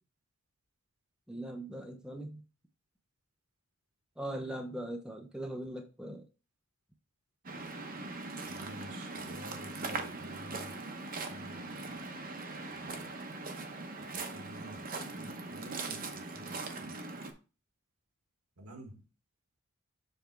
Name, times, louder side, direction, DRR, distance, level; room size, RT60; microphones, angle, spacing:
voice 1, 1.3-2.4 4.2-6.2, right 1 dB, 5° right, 0.6 m, -40 dB
Waves surf, 7.4-17.3, right 3 dB, 40° right, 0.8 m, -41 dB
voice 2, 8.4-10.8 11.3-12.0 12.8-13.0 14.1-14.8 15.1-16.9 18.6-18.9, right 1 dB, 85° right, 1.4 m, -50 dB
7.0 x 3.4 x 4.5 m
head